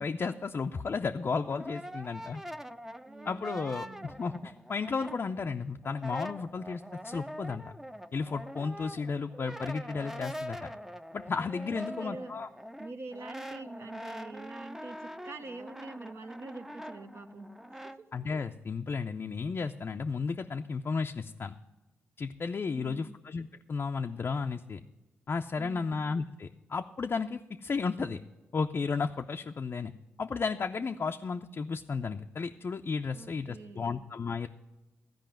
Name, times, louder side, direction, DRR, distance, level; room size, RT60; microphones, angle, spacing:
voice 1, 0.0-2.4 3.3-7.6 8.1-10.7 11.1-12.5 18.1-21.6 22.2-24.8 25.3-28.2 28.5-29.9 30.2-34.5, left 5 dB, 45° left, 4 dB, 0.5 m, -33 dB
Brass instrument, 1.1-5.6 5.8-18.0, equal, 5° right, 0.6 m, -44 dB
voice 2, 3.0-4.1 11.7-12.3 12.8-18.1 22.7-23.1 25.6-25.9 33.1-34.0, right 3 dB, 55° right, 7 dB, 1.0 m, -45 dB
13.0 x 5.0 x 9.0 m, 1.1 s
supercardioid pair, 45°, 5 cm